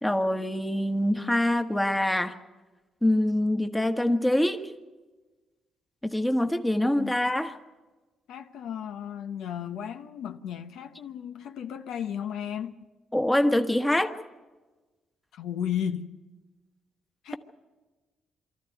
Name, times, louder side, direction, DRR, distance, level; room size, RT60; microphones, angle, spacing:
voice 1, 0.0-2.4 3.0-4.7 6.0-7.6 13.1-14.1, left 1 dB, 10° left, 1.3 m, -25 dB
voice 2, 6.8-7.2 8.3-12.7 15.3-16.1 17.2-17.4, left 9 dB, 80° left, 0.9 m, -34 dB
24.0 x 13.5 x 9.3 m
cardioid pair, 90°, 0 cm